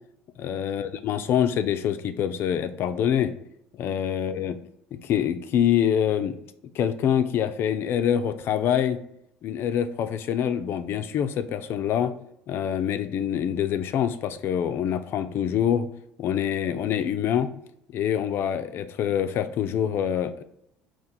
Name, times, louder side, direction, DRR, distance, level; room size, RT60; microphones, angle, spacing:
voice 1, 0.4-3.3 3.8-4.6 4.9-6.4 6.7-9.0 9.4-12.1 12.5-15.9 16.2-17.5 17.9-20.4, left 9 dB, 55° left, 10 dB, 0.4 m, -25 dB
4.4 x 2.4 x 3.8 m, 0.74 s
hypercardioid pair, 70°, 5 cm